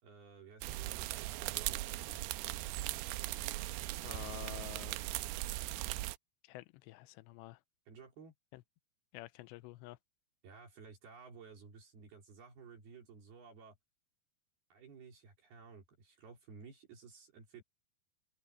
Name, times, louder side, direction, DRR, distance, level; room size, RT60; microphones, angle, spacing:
voice 1, 0.0-2.2 7.9-8.3 10.4-13.8 14.7-17.6, right 5 dB, 60° right, 5.7 m, -55 dB
sound 1, 0.6-6.2, right 17 dB, 85° right, 2.4 m, -39 dB
voice 2, 4.0-5.0 6.4-7.6 8.5-8.6 9.1-10.0, left 18 dB, 80° left, 2.7 m, -49 dB
open air
omnidirectional pair, 5.3 m